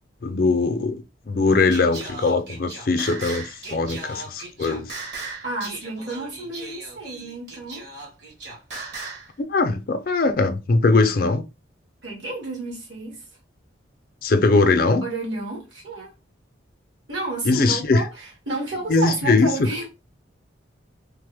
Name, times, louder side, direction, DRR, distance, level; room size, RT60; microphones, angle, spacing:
voice 1, 0.2-5.0 9.4-11.4 14.2-15.0 17.5-18.0 18.9-19.5, left 3 dB, 50° left, 0.4 m, -21 dB
Singing, 1.7-9.3, right 3 dB, 55° right, 1.2 m, -37 dB
voice 2, 5.4-7.9 12.0-13.2 15.0-16.1 17.1-19.9, right 2 dB, 75° right, 1.5 m, -31 dB
3.3 x 2.0 x 3.4 m
head